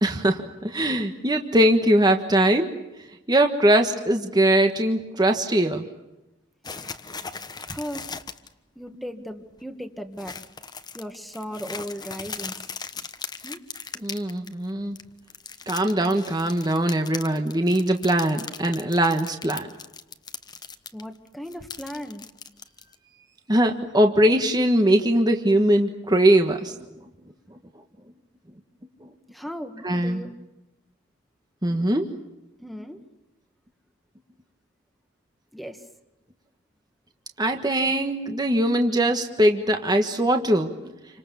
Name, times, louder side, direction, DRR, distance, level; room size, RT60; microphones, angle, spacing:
voice 1, 0.0-2.7 3.3-5.9 14.0-15.0 15.7-19.7 23.5-26.7 29.0-29.1 29.8-30.2 31.6-32.1 37.4-40.7, right 1 dB, 20° right, 5 dB, 1.5 m, -21 dB
sound 1, 6.6-8.5 8.9-9.0 9.3-9.6 10.2-14.7 15.0-21.0 21.3-22.9, left 5 dB, 20° left, 1.2 m, -38 dB
voice 2, 6.7-7.0 7.6-8.1 8.8-10.4 10.9-12.5 13.4-13.6 20.9-22.3 29.3-30.3 32.6-33.0 35.5-35.9, equal, ahead, 6 dB, 1.8 m, -37 dB
29.0 x 25.5 x 7.1 m, 1.0 s
head